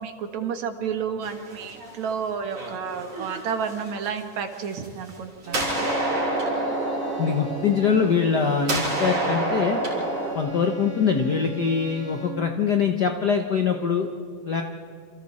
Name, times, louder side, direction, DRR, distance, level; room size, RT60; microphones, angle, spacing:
voice 1, 0.0-5.9, right 6 dB, 70° right, 6 dB, 2.7 m, -31 dB
sound 1, 1.2-2.1 2.5-4.1 4.7-5.2 5.4-8.4 8.7-10.3, right 1 dB, 50° right, 5.7 m, -28 dB
sound 2, 5.4-12.6, right 1 dB, 30° left, 3.3 m, -38 dB
voice 2, 7.2-9.8 10.3-14.1 14.5-14.6, left 6 dB, 75° left, 5 dB, 0.9 m, -23 dB
28.0 x 28.0 x 4.2 m, 2.1 s
omnidirectional pair, 3.5 m